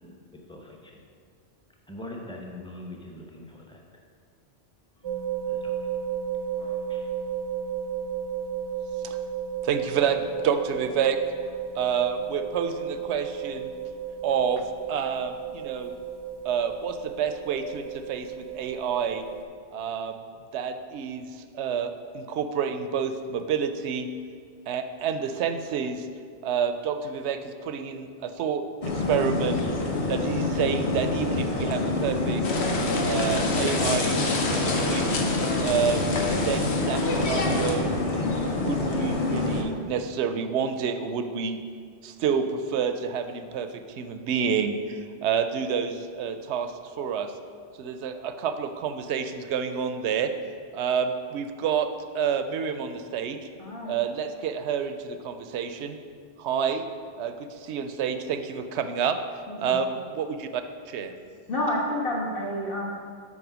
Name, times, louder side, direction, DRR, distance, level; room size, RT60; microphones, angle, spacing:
voice 1, 0.5-1.0 1.9-3.8 5.5-5.8 6.6-7.1, left 1 dB, 5° left, 0 dB, 0.7 m, -42 dB
sound 1, 5.0-19.4, right 8 dB, 35° right, 0.4 m, -34 dB
voice 2, 9.6-11.2 11.8-13.7 14.2-14.6 14.9-15.9 16.4-19.2 19.7-20.2 20.5-24.1 24.7-26.1 26.4-29.6 30.1-32.4 33.0-34.2 34.5-35.1 35.6-36.2 36.4-37.9 38.5-41.6 42.0-46.7 47.0-47.3 47.8-50.3 50.7-51.9 52.1-53.4 53.8-56.0 56.4-56.8 57.2-57.4 57.6-59.1 59.6-60.6 60.9-61.1, right 7 dB, 80° right, 8 dB, 0.8 m, -28 dB
sound 2, 28.8-39.6, left 2 dB, 35° left, 0.8 m, -27 dB
sound 3, 32.4-37.7, left 2 dB, 75° left, 1.1 m, -29 dB
voice 3, 53.6-54.0 59.5-59.8 61.5-62.9, left 1 dB, 55° left, -4 dB, 1.4 m, -29 dB
6.2 x 4.6 x 6.0 m, 2.1 s
omnidirectional pair, 1.1 m